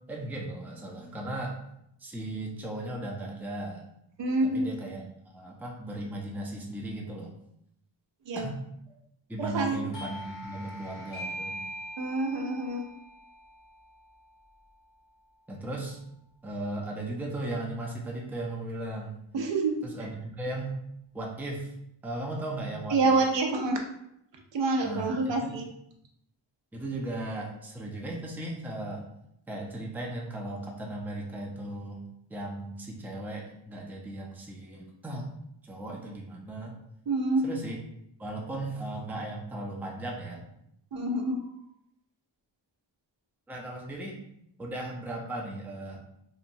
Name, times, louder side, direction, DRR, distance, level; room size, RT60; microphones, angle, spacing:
voice 1, 0.1-1.6 2.0-3.8 4.4-5.1 5.3-7.3 8.3-8.5 9.3-11.6 15.5-16.0 16.4-19.1 19.9-20.8 21.1-21.7 22.0-23.1 24.8-25.5 26.7-29.0 29.5-32.0 32.3-35.3 35.7-36.7 37.4-37.8 38.2-40.5 43.5-44.2 44.6-46.0, right 1 dB, 5° right, -1 dB, 0.4 m, -36 dB
voice 2, 4.2-4.7 8.3-8.5 9.4-9.8 12.0-12.8 19.3-19.8 22.9-23.8 24.5-25.6 37.1-37.5 40.9-41.4, right 3 dB, 70° right, 2 dB, 0.6 m, -27 dB
Doorbell, 9.9-15.2, equal, 45° left, 1.0 m, -42 dB
2.9 x 2.2 x 2.5 m, 0.76 s
wide cardioid pair, 85°, 46 cm